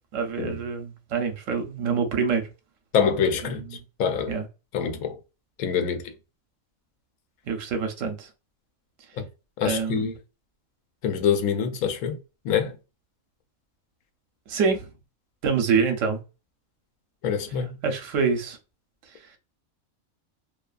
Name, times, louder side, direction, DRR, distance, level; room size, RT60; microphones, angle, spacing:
voice 1, 0.1-2.4 4.3-4.5 7.5-8.3 9.6-10.1 14.5-14.9 15.4-16.2 17.8-18.6, right 5 dB, 70° right, 1.0 m, -25 dB
voice 2, 2.9-3.6 4.0-4.3 4.7-5.1 5.6-6.0 9.2-9.3 9.6-10.1 11.0-12.2 12.4-12.7 17.2-17.7, left 7 dB, 90° left, 1.0 m, -25 dB
2.6 x 2.3 x 2.3 m
omnidirectional pair, 1.4 m